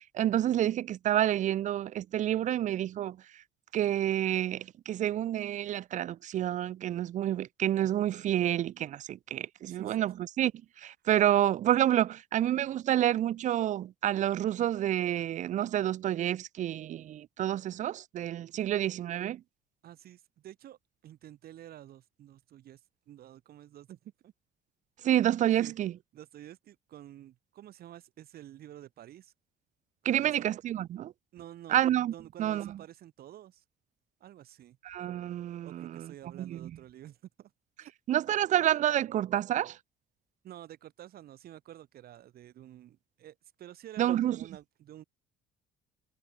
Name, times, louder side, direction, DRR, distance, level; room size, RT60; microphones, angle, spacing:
voice 1, 0.0-3.2 3.7-10.5 10.8-19.4 25.0-25.9 30.0-31.1 31.7-32.1 32.4-32.7 34.8-36.1 36.4-36.7 38.1-39.8 44.0-44.4, right 12 dB, 45° right, 0.4 m, -29 dB
voice 2, 9.7-10.1 19.8-20.8 21.0-22.8 23.1-24.3 25.6-25.7 26.1-29.3 30.1-30.4 31.3-31.8 32.1-33.6 34.2-34.8 35.6-37.5 37.8-37.9 40.4-45.0, right 12 dB, 65° right, 5.4 m, -50 dB
cardioid pair, 110°, 17 cm